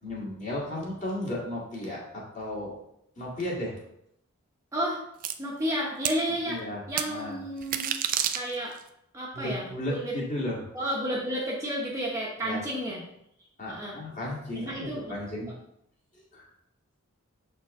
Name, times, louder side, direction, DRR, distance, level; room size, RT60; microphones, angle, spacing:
voice 1, 0.0-2.8 3.2-3.7 6.5-7.4 9.3-10.6 12.4-12.6 13.6-15.5 16.3-16.5, left 1 dB, 35° left, -3 dB, 1.8 m, -34 dB
sound 1, 5.2-5.3 6.0-6.2 7.0-7.1 7.6-8.8, right 10 dB, 40° right, 0.3 m, -28 dB
voice 2, 5.4-6.6 6.9-7.8 8.3-8.7 9.1-10.1 10.7-13.0 13.7-14.0 14.5-15.1, equal, 15° right, -4 dB, 0.9 m, -31 dB
6.9 x 4.5 x 3.6 m, 0.76 s
head